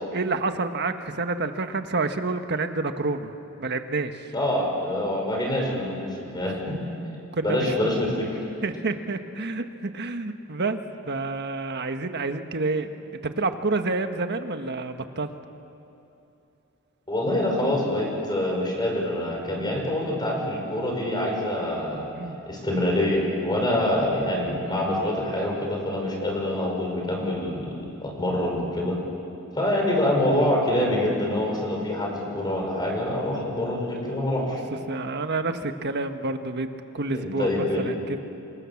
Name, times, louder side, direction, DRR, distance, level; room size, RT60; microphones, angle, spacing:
voice 1, 0.1-3.3 3.6-4.2 7.4-7.8 8.6-10.8 11.0-12.9 13.2-15.3 22.2-22.4 29.6-29.7 34.7-36.7 36.9-38.2, right 3 dB, 55° right, 7 dB, 1.4 m, -28 dB
voice 2, 4.3-6.8 7.4-8.3 17.1-22.1 22.5-29.0 29.5-34.6 37.1-37.9, left 1 dB, 20° left, 0 dB, 5.7 m, -25 dB
28.0 x 26.0 x 7.2 m, 2.8 s
head